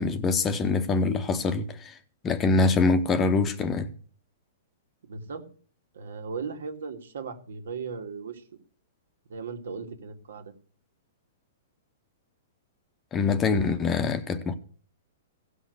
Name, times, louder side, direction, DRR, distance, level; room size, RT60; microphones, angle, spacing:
voice 1, 0.0-2.0 2.2-3.9 13.1-14.5, left 4 dB, 15° left, 0.7 m, -24 dB
voice 2, 5.0-5.4 5.9-8.4 9.3-10.5, right 5 dB, 90° right, 2.4 m, -37 dB
16.5 x 6.4 x 8.0 m
hypercardioid pair, 170°, 0 cm